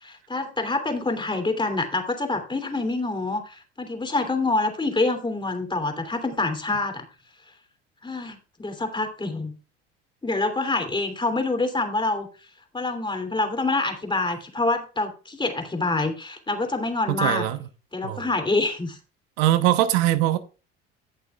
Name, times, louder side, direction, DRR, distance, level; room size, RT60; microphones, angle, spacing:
voice 1, 0.0-7.0 8.0-9.5 10.2-12.3 12.7-17.4 17.9-19.0, left 2 dB, 15° left, 2.8 m, -26 dB
voice 2, 17.1-17.6 18.0-18.3 19.4-20.4, right 13 dB, 75° right, 1.0 m, -21 dB
17.0 x 6.7 x 2.4 m
hypercardioid pair, 70°, 31 cm